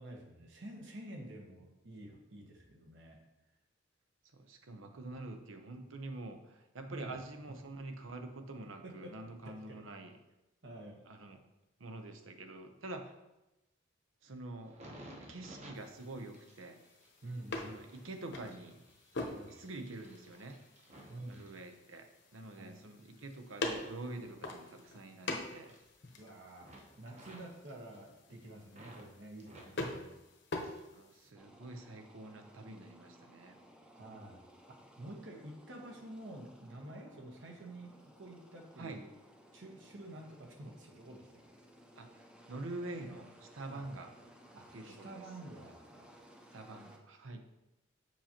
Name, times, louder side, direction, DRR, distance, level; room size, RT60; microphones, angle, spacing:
voice 1, 0.0-3.2 6.9-7.2 8.8-9.1 9.4-9.8 10.6-11.0 17.2-17.8 19.3-19.6 21.1-21.4 22.6-22.7 26.2-26.7 27.0-30.1 33.9-34.4 35.0-39.1 39.5-41.3 43.7-43.9 44.5-46.1, right 1 dB, 65° right, 1 dB, 1.2 m, -49 dB
voice 2, 4.3-10.1 11.0-11.4 11.8-13.1 14.2-14.8 15.3-16.8 17.6-18.8 19.5-20.6 21.2-25.8 30.9-33.6 38.8-39.0 42.0-44.1 44.7-45.1 46.5-47.4, right 2 dB, 85° right, 5 dB, 0.8 m, -46 dB
sound 1, 14.6-22.2 22.7-25.3 25.5-26.3 26.6-29.1 29.4-31.0 31.2-32.0 32.5-32.7, right 1 dB, 35° right, 0.9 m, -57 dB
sound 2, 15.7-31.3, left 2 dB, 60° left, 0.9 m, -45 dB
sound 3, 31.3-47.0, equal, 5° right, 0.6 m, -59 dB
7.3 x 5.6 x 2.9 m, 0.98 s
head